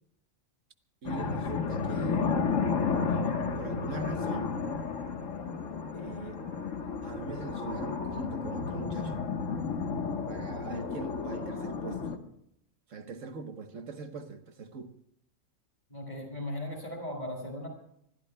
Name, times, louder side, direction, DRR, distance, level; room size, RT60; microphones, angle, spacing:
sound 1, 1.0-12.2, left 5 dB, 70° left, 1.6 m, -32 dB
voice 1, 1.0-2.3 3.1-4.6 5.9-6.4 7.0-9.2 10.3-12.1 12.9-14.9, right 4 dB, 70° right, 1.5 m, -42 dB
voice 2, 15.9-17.7, left 1 dB, 35° left, 5.6 m, -37 dB
26.5 x 21.0 x 2.2 m
omnidirectional pair, 1.4 m